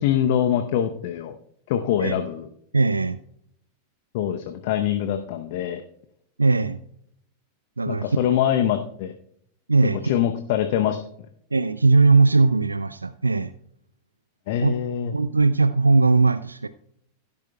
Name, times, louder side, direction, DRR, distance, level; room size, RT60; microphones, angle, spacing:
voice 1, 0.0-1.4 1.7-2.5 4.1-5.8 7.9-9.1 10.0-11.0 14.5-15.1, left 10 dB, 50° left, 7 dB, 0.7 m, -24 dB
voice 2, 2.7-3.2 6.4-6.8 7.8-8.4 9.7-10.2 11.5-13.5 14.6-14.7 15.1-16.7, right 3 dB, 80° right, 13 dB, 0.4 m, -19 dB
16.5 x 10.5 x 2.3 m, 0.71 s
figure-of-eight pair, 90°, 0 cm